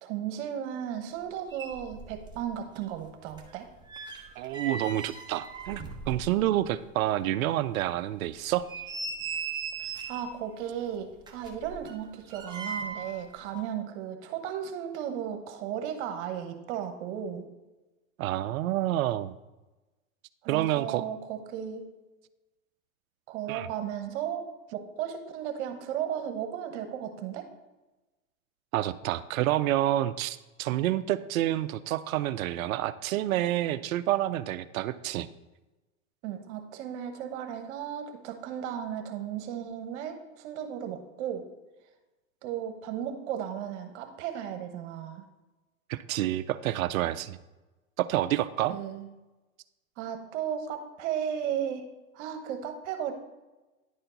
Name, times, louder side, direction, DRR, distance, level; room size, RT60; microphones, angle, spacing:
voice 1, 0.0-3.7 9.8-17.4 20.4-21.8 23.3-27.5 36.2-41.4 42.4-45.2 48.7-49.1 50.0-51.9 52.1-53.1, right 9 dB, 55° right, 6 dB, 1.2 m, -35 dB
sound 1, 1.2-1.3 1.5-2.5 2.8-6.7 7.1-7.2 7.7-7.8 8.4-10.3 11.2-13.2 13.5-13.6, right 4 dB, 10° right, 0.9 m, -39 dB
voice 2, 4.4-8.7 18.2-19.3 20.5-21.0 23.5-23.7 28.7-35.3 45.9-47.4 48.0-48.8, right 14 dB, 80° right, 14 dB, 0.5 m, -28 dB
10.0 x 4.4 x 3.9 m, 1.1 s
hypercardioid pair, 125°, 41 cm